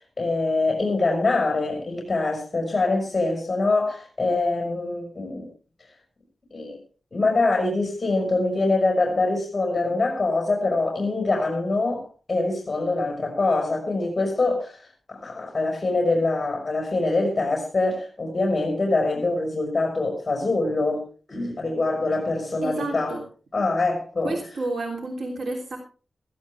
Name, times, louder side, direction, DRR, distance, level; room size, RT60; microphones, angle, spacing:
voice 1, 0.2-5.5 6.5-6.8 7.1-14.8 15.1-21.0 21.3-23.2 23.5-24.4, left 2 dB, 35° left, 5.3 m, -24 dB
voice 2, 22.6-23.2 24.2-25.8, right 2 dB, 80° right, 3.2 m, -30 dB
17.0 x 15.5 x 3.5 m
wide cardioid pair, 110°, 0 cm